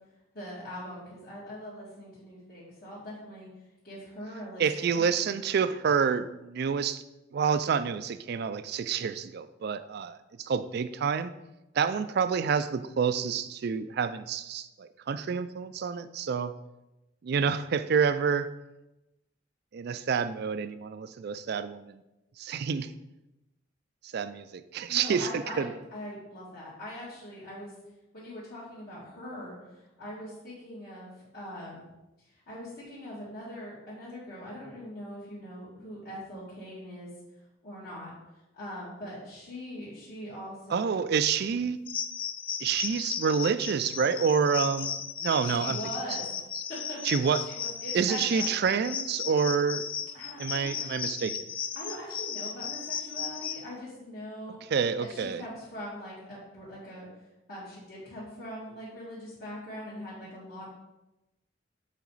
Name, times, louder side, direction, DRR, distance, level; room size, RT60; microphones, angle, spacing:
voice 1, 0.3-3.5 3.8-5.0 24.9-27.7 28.1-31.9 32.2-37.1 37.6-38.1 38.5-41.0 45.4-46.2 46.7-47.2 47.5-48.5 50.1-51.0 51.7-54.6 55.0-57.1 57.5-60.7, equal, 55° left, -11 dB, 2.0 m, -42 dB
voice 2, 4.6-7.0 7.3-11.3 11.8-16.5 17.2-18.5 19.7-22.0 22.4-22.9 24.1-25.3 25.6-25.7 40.7-41.8 42.6-45.8 47.0-47.4 47.9-49.9 50.4-51.4 54.7-55.4, right 6 dB, 60° right, 12 dB, 0.4 m, -28 dB
sound 1, 41.9-53.6, left 7 dB, 30° left, 0.4 m, -35 dB
7.3 x 4.1 x 4.0 m, 0.96 s
head